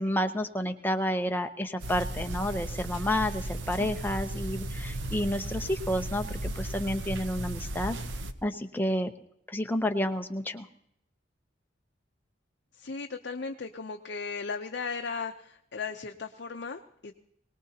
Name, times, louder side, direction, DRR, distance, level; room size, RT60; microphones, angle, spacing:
voice 1, 0.0-8.0 8.4-9.1 9.5-10.7, left 1 dB, 10° left, 5 dB, 0.7 m, -30 dB
sound 1, 1.8-8.3, right 1 dB, 70° right, 0.8 m, -35 dB
voice 2, 12.7-17.1, left 5 dB, 60° left, 4 dB, 0.6 m, -36 dB
22.5 x 19.0 x 2.8 m, 0.73 s
head